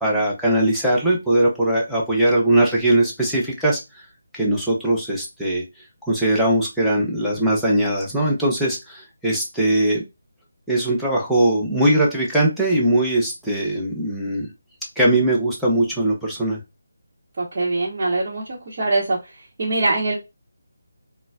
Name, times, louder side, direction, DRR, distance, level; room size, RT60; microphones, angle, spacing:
voice 1, 0.0-3.8 4.3-5.6 6.1-10.0 10.7-14.5 15.0-16.6, right 1 dB, ahead, -6 dB, 0.7 m, -20 dB
voice 2, 17.4-19.2 19.6-20.2, right 2 dB, 40° right, -6 dB, 0.9 m, -22 dB
3.9 x 2.1 x 2.3 m, 0.24 s
figure-of-eight pair, 155°, 0 cm